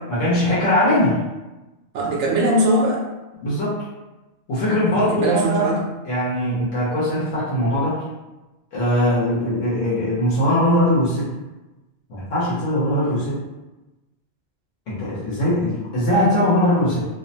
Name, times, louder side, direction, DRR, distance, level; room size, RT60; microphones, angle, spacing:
voice 1, 0.1-1.2 3.4-3.8 4.5-5.8 6.1-8.0 8.7-11.3 12.1-13.3 14.9-17.1, left 1 dB, 80° left, -8 dB, 1.2 m, -20 dB
voice 2, 1.9-3.0 4.7-5.8 13.0-13.2, right 1 dB, 70° right, -2 dB, 0.9 m, -21 dB
2.8 x 2.0 x 2.7 m, 1.1 s
omnidirectional pair, 1.3 m